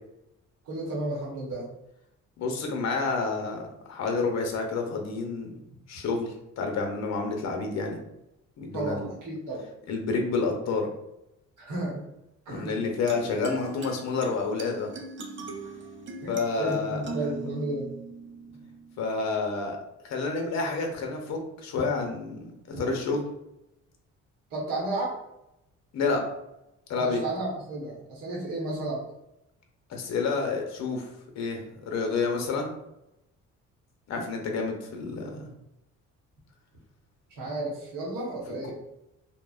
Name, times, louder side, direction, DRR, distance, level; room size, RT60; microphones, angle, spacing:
voice 1, 0.6-1.7 8.7-9.7 11.6-12.1 12.5-12.8 16.2-17.9 22.7-22.8 24.5-25.1 26.9-29.0 37.3-38.7, right 2 dB, 85° right, -4 dB, 1.0 m, -33 dB
voice 2, 2.4-3.6 3.9-5.5 5.9-8.0 8.6-9.1 9.9-10.9 12.5-14.9 16.3-17.0 19.0-19.8 20.0-23.2 25.9-26.2 26.9-27.2 29.9-31.1 31.4-31.6 31.9-32.7 34.1-35.5, left 4 dB, 60° left, 2 dB, 0.6 m, -29 dB
sound 1, 12.5-19.5, right 3 dB, 40° right, 0.5 m, -41 dB
2.8 x 2.1 x 2.3 m, 0.87 s
cardioid pair, 90°, 30 cm